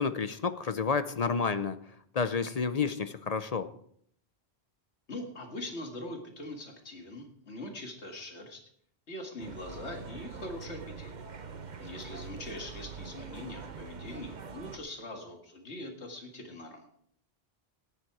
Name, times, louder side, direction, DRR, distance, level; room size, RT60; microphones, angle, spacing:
voice 1, 0.0-1.8 2.1-3.7, left 5 dB, 45° left, 12 dB, 0.6 m, -30 dB
voice 2, 5.1-8.6 9.1-11.1 11.8-16.9, left 1 dB, 85° left, 3 dB, 2.1 m, -42 dB
sound 1, 9.4-14.8, right 5 dB, 45° right, 1.0 m, -44 dB
14.0 x 10.5 x 4.8 m, 0.65 s
omnidirectional pair, 1.1 m